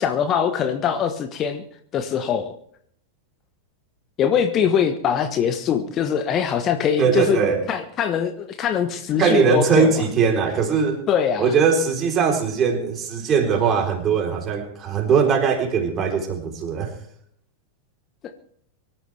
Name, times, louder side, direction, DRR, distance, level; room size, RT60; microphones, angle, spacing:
voice 1, 0.0-1.6 1.9-2.5 4.2-7.4 7.7-10.0 11.1-11.5, left 8 dB, 30° left, 8 dB, 1.2 m, -22 dB
voice 2, 7.0-7.6 9.2-11.0 11.4-16.9, right 6 dB, 30° right, 2 dB, 3.9 m, -20 dB
24.0 x 13.5 x 3.4 m, 0.63 s
figure-of-eight pair, 90°, 0 cm